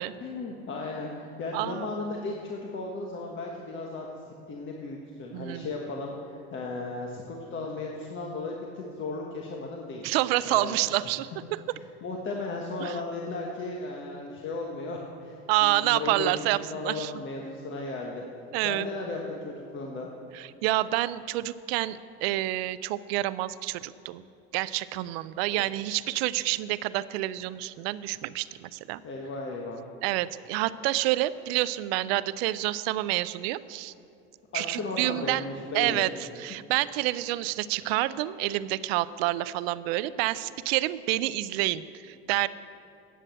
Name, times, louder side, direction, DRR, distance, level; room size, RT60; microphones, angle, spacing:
voice 1, 0.2-4.2 4.5-10.0 10.5-10.9 11.7-16.3 16.7-18.2 18.6-20.1 25.5-25.6 29.0-29.8 34.5-36.1, left 3 dB, 40° left, 0 dB, 1.3 m, -35 dB
voice 2, 1.5-1.9 5.3-5.7 10.0-11.3 12.8-12.9 15.5-16.6 16.8-17.1 18.5-18.9 20.3-24.2 24.5-29.0 30.0-33.9 34.5-35.4 35.7-42.5, right 16 dB, 85° right, 17 dB, 0.5 m, -28 dB
10.0 x 8.0 x 7.6 m, 2.5 s
supercardioid pair, 105°, 30 cm